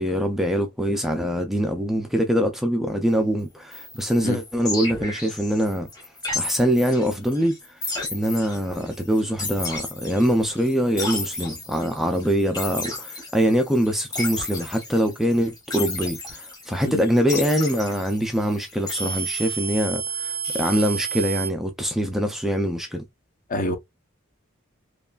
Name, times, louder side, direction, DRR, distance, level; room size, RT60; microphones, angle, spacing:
voice 1, 0.0-5.9 6.3-7.6 8.1-23.0, equal, ahead, 0.3 m, -23 dB
sound 1, 3.7-21.5, right 1 dB, 20° left, 1.0 m, -33 dB
voice 2, 4.2-4.4 16.9-17.0 23.5-23.8, left 1 dB, 40° left, 0.6 m, -26 dB
3.0 x 2.3 x 2.3 m
head